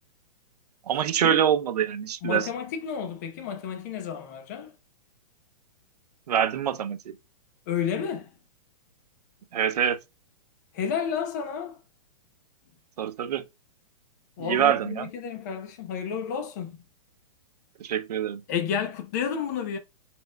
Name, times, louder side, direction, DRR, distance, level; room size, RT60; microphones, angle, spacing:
voice 1, 0.9-2.5 6.3-7.2 9.5-10.0 13.0-13.4 14.4-15.1 17.8-18.4, right 9 dB, 75° right, 0.7 m, -25 dB
voice 2, 2.2-4.7 7.7-8.3 10.7-11.8 14.4-16.8 18.5-19.8, left 7 dB, 25° left, 0.7 m, -31 dB
5.3 x 4.3 x 2.3 m
hypercardioid pair, 180°, 20 cm